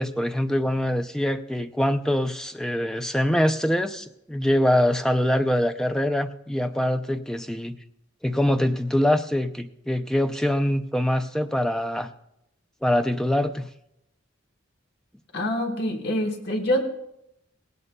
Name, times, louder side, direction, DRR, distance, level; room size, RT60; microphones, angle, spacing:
voice 1, 0.0-7.8 8.2-12.1 12.8-13.7, left 1 dB, 5° left, 7 dB, 0.4 m, -24 dB
voice 2, 15.3-16.8, equal, 55° left, 3 dB, 1.2 m, -25 dB
18.5 x 17.5 x 2.2 m, 0.84 s
head